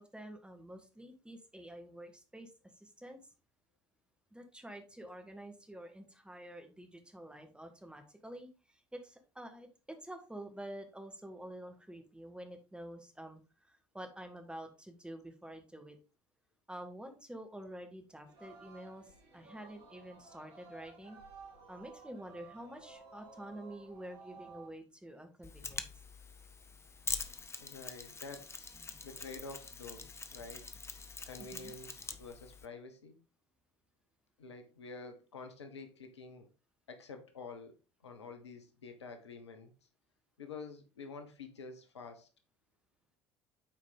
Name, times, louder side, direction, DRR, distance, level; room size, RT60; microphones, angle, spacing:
voice 1, 0.0-2.5 2.8-3.2 4.3-16.0 16.7-21.2 21.7-25.9 28.8-29.0 31.4-31.7, right 1 dB, 5° right, 5 dB, 1.8 m, -48 dB
Singing, 18.3-24.7, right 4 dB, 70° right, 1.8 m, -55 dB
Mechanisms, 25.4-32.7, left 4 dB, 20° left, 0.9 m, -44 dB
voice 2, 27.6-28.8 29.0-30.7 31.2-33.1 34.4-36.5 36.9-37.7 38.0-39.7 40.4-42.3, left 4 dB, 80° left, 6 dB, 1.0 m, -48 dB
8.8 x 4.7 x 3.9 m, 0.32 s
figure-of-eight pair, 60°, 14 cm